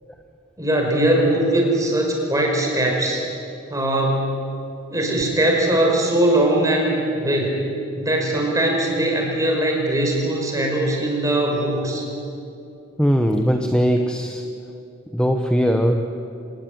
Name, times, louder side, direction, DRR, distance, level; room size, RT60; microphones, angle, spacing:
voice 1, 0.6-3.2 3.7-4.5 4.9-7.6 8.0-12.0, right 1 dB, 15° right, 0 dB, 5.1 m, -20 dB
voice 2, 13.0-14.5 15.1-16.0, equal, 5° left, 4 dB, 1.0 m, -19 dB
26.5 x 19.0 x 9.4 m, 2.6 s
head